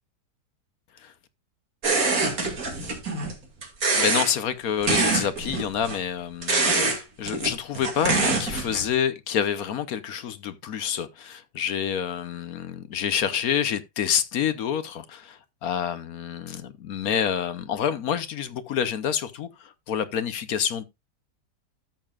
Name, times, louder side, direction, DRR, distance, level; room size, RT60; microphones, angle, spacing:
sound 1, 1.8-3.3 3.6-4.3 4.8-6.0 6.4-7.0 7.3-8.9, right 3 dB, 55° right, 2.7 m, -25 dB
voice 1, 3.9-20.8, left 8 dB, 65° left, 1.2 m, -28 dB
13.0 x 7.0 x 2.4 m
omnidirectional pair, 1.8 m